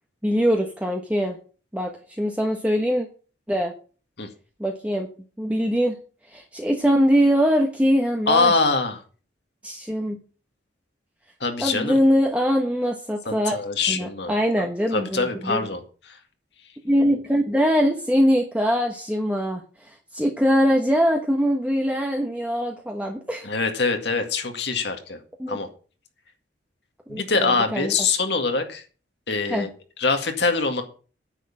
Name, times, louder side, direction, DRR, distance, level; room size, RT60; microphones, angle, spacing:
voice 1, 0.2-1.4 1.7-3.1 3.5-3.7 4.6-5.1 5.4-5.9 6.3-8.5 9.6-10.2 11.6-13.6 13.9-15.6 16.8-23.5 25.4-25.6 27.1-27.9 29.5-29.7, equal, 5° right, 1 dB, 1.2 m, -22 dB
voice 2, 8.3-9.0 11.4-11.9 13.3-14.3 14.9-16.2 23.4-25.2 25.5-25.7 27.1-28.8 29.3-29.7 30.0-30.8, left 4 dB, 65° left, 5 dB, 2.0 m, -24 dB
9.9 x 6.5 x 8.5 m, 0.38 s
head